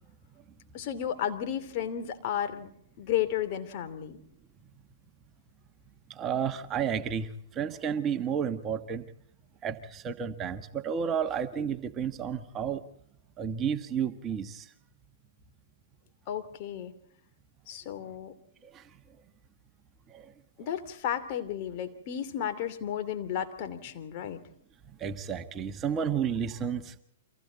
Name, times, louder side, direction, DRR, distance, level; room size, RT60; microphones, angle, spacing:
voice 1, 0.7-2.7 3.0-4.2 16.3-16.9 17.7-18.3 20.6-24.4, left 10 dB, 45° left, 8 dB, 2.8 m, -33 dB
voice 2, 6.1-9.0 9.6-12.8 13.4-14.7 18.7-18.8 20.1-20.2 25.0-26.9, right 7 dB, 25° right, 8 dB, 1.4 m, -31 dB
29.5 x 25.0 x 4.1 m, 0.70 s
hypercardioid pair, 115°, 0 cm